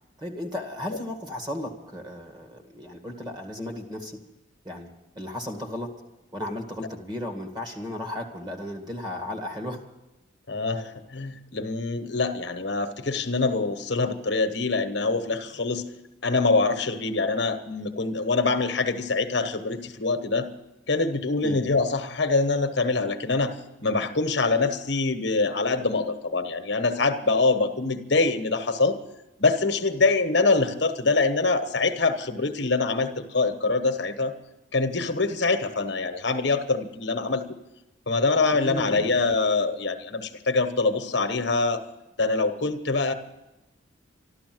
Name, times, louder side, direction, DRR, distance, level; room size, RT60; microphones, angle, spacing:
voice 1, 0.2-4.2 4.6-4.9 5.2-5.9 6.3-9.8 21.4-21.6 38.5-39.1, left 1 dB, 20° right, 4 dB, 2.0 m, -35 dB
voice 2, 10.5-15.8 16.2-20.5 20.9-29.0 29.4-34.3 34.7-37.4 38.1-41.8 42.2-43.1, left 3 dB, 60° left, 8 dB, 1.2 m, -24 dB
13.0 x 12.5 x 7.7 m, 0.97 s
head